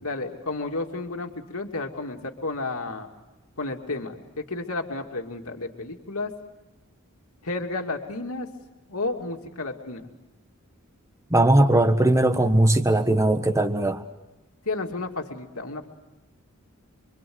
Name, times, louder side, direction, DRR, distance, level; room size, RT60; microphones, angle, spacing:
voice 1, 0.0-3.1 3.6-6.3 7.4-8.5 8.9-10.1 14.6-15.9, left 2 dB, 90° left, 3 dB, 2.6 m, -32 dB
voice 2, 11.3-14.0, right 1 dB, 15° right, 8 dB, 1.5 m, -19 dB
27.0 x 25.0 x 7.9 m, 1.1 s
head